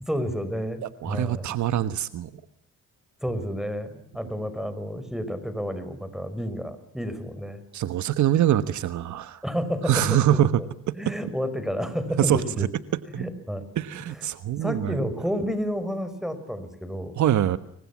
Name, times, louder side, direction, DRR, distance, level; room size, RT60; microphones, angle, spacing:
voice 1, 0.0-1.5 3.2-7.6 9.4-10.7 11.0-12.7 13.1-13.7 14.0-14.3 14.6-17.2, equal, ahead, 12 dB, 5.6 m, -30 dB
voice 2, 1.0-2.3 7.7-9.4 9.9-10.5 10.9-11.0 12.2-12.7 13.1-13.2 13.8-15.0 17.2-17.6, right 12 dB, 70° right, 13 dB, 1.3 m, -24 dB
29.5 x 24.0 x 7.3 m, 0.74 s
cardioid pair, 90°, 30 cm